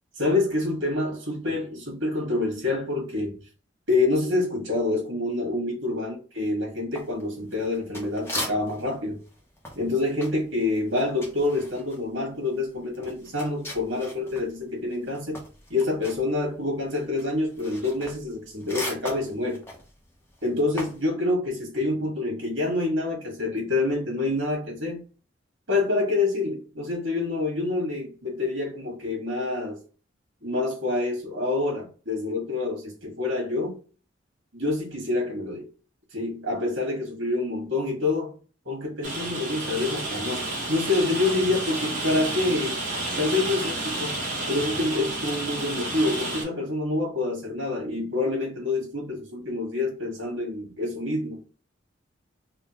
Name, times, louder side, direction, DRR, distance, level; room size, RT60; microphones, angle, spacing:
voice 1, 0.2-3.4 3.9-9.2 9.7-15.4 15.7-19.6 20.4-25.0 25.7-29.8 30.4-33.8 34.5-35.6 36.1-38.3 38.6-42.8 43.2-44.2 44.5-51.4, left 2 dB, 70° right, 1.4 m, -27 dB
sound 1, 6.9-9.0 9.2-14.5 14.8-21.1, left 1 dB, 10° left, 0.7 m, -38 dB
Rain, 39.0-46.4, right 2 dB, 40° right, 1.1 m, -31 dB
3.7 x 2.1 x 2.8 m
head